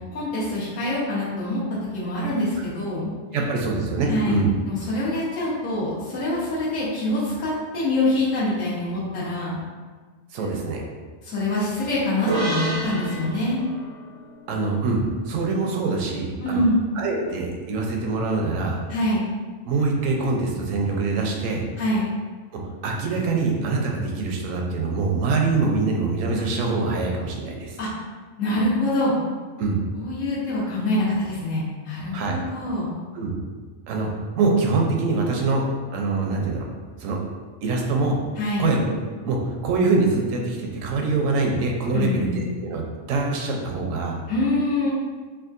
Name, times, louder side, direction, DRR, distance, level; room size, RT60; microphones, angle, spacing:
voice 1, 0.1-1.6 1.9-3.1 4.1-9.6 10.4-10.5 11.2-13.6 16.4-16.8 18.9-19.2 21.8-22.1 27.8-27.9 28.4-29.1 29.9-32.9 38.4-38.7 41.9-42.3 44.3-44.9, left 1 dB, 85° left, -7 dB, 1.3 m, -25 dB
voice 2, 3.3-4.5 10.3-10.8 14.5-16.6 17.0-18.8 19.7-21.6 22.8-27.8 29.6-29.8 32.1-32.4 33.1-33.3 33.9-34.1 34.3-36.7 37.0-37.2 37.6-38.2 38.6-38.9 39.2-44.2, right 3 dB, 85° right, 1 dB, 1.0 m, -24 dB
sound 1, 12.3-15.7, right 2 dB, 50° right, 0.3 m, -31 dB
3.5 x 2.3 x 2.5 m, 1.4 s
omnidirectional pair, 1.3 m